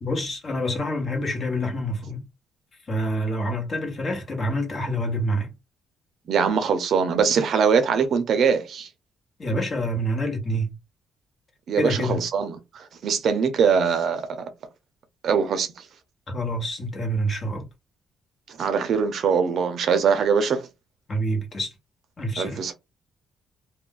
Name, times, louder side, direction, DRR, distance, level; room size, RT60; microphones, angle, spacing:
voice 1, 0.0-2.3 2.9-5.5 9.4-10.7 11.8-12.2 16.3-17.7 21.1-21.7 22.2-22.6, equal, 35° left, 1.1 m, -27 dB
voice 2, 6.3-8.9 11.7-14.5 15.2-15.8 18.6-20.7 22.4-22.7, right 6 dB, 55° right, 0.6 m, -22 dB
2.4 x 2.1 x 3.7 m
cardioid pair, 125°, 0 cm